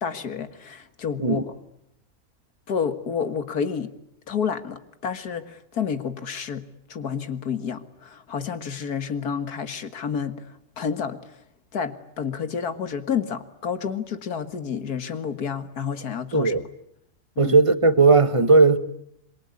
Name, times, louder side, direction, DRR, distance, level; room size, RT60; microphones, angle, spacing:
voice 1, 0.0-1.4 2.7-3.9 4.3-6.6 6.9-11.4 11.7-16.5 17.4-17.6, left 6 dB, 85° left, 2.2 m, -29 dB
voice 2, 16.3-16.6 17.4-18.8, right 3 dB, 25° right, 1.2 m, -17 dB
26.5 x 23.0 x 9.6 m
omnidirectional pair, 1.6 m